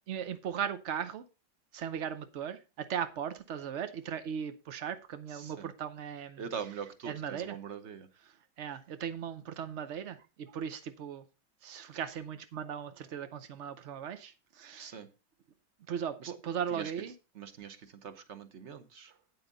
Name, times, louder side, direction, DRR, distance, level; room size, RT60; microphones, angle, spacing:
voice 1, 0.1-1.2 1.7-6.4 7.0-7.6 8.2-11.2 11.6-14.9 15.9-17.1, right 8 dB, 80° right, 0.6 m, -38 dB
voice 2, 5.3-5.7 6.4-8.1 14.8-15.1 16.2-16.3 16.7-16.9 17.3-19.1, right 7 dB, 45° right, 1.0 m, -43 dB
8.8 x 8.3 x 3.9 m
omnidirectional pair, 2.2 m